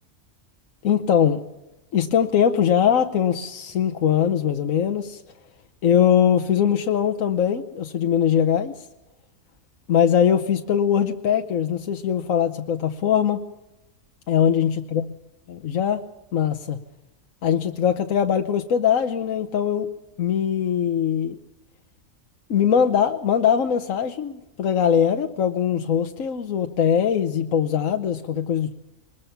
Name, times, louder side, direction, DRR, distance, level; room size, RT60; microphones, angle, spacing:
voice 1, 0.8-1.4 1.9-5.2 5.8-8.9 9.9-13.4 14.3-15.0 15.5-16.0 16.3-16.8 17.4-19.9 20.2-21.4 22.5-28.7, left 8 dB, 75° left, 5 dB, 1.3 m, -21 dB
22.5 x 20.5 x 5.8 m, 0.95 s
omnidirectional pair, 1.4 m